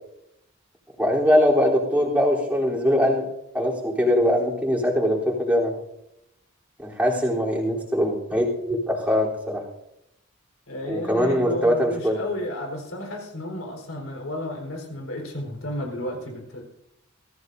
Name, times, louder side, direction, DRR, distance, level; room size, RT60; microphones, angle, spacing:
voice 1, 1.0-3.3 3.5-5.7 6.8-9.6 10.9-12.2, equal, 5° right, -5 dB, 3.6 m, -22 dB
voice 2, 7.0-7.4 10.7-16.6, left 1 dB, 75° left, 1 dB, 4.3 m, -33 dB
23.0 x 15.0 x 2.7 m, 0.81 s
head